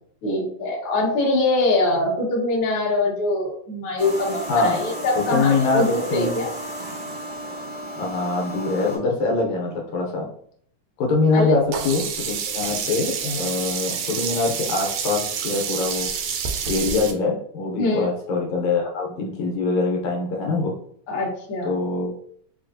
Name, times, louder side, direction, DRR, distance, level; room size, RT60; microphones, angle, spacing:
voice 1, 0.2-6.5 11.3-11.5 17.8-18.1 21.1-21.7, left 2 dB, 55° left, -3 dB, 1.5 m, -23 dB
sound 1, 4.0-9.0, right 1 dB, 65° right, 0.7 m, -34 dB
voice 2, 4.5-4.8 5.3-6.3 8.0-10.3 11.0-16.1 16.7-20.7 21.6-22.1, left 3 dB, 80° left, 0 dB, 2.1 m, -23 dB
Sink (filling or washing), 11.7-17.1, right 7 dB, 85° right, 2.0 m, -28 dB
5.1 x 2.3 x 2.6 m, 0.62 s
omnidirectional pair, 3.3 m